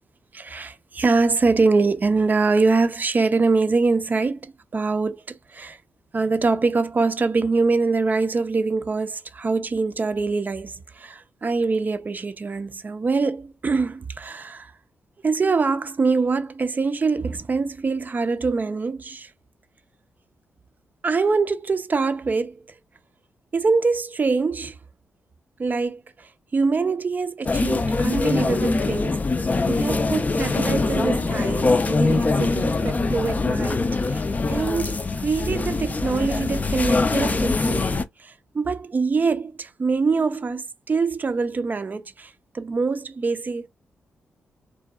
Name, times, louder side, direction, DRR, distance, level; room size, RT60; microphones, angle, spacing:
voice 1, 0.3-5.8 6.1-14.7 15.2-19.3 21.0-22.6 23.5-24.8 25.6-29.2 29.7-34.2 34.5-43.7, right 4 dB, 40° right, 0.4 m, -24 dB
sound 1, 27.5-38.0, left 3 dB, 35° left, 0.4 m, -23 dB
2.6 x 2.2 x 2.2 m
supercardioid pair, 45°, 5 cm